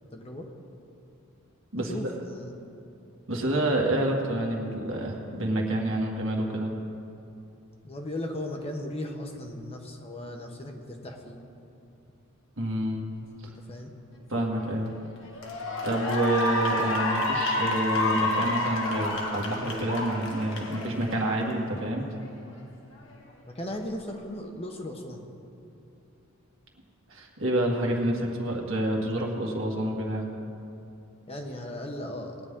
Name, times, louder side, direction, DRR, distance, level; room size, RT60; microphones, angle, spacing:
voice 1, 0.1-0.5 1.8-2.5 7.8-11.4 13.7-13.9 23.5-25.2 31.3-32.4, left 1 dB, 25° left, 2 dB, 1.0 m, -37 dB
voice 2, 1.7-2.1 3.3-6.7 12.6-13.0 14.3-14.9 15.8-22.0 27.1-30.3, right 1 dB, 60° right, -1 dB, 1.8 m, -28 dB
Cheering / Applause, 14.6-14.9 15.3-21.8, left 1 dB, 60° left, 1.6 m, -29 dB
19.5 x 9.7 x 3.7 m, 2.8 s
head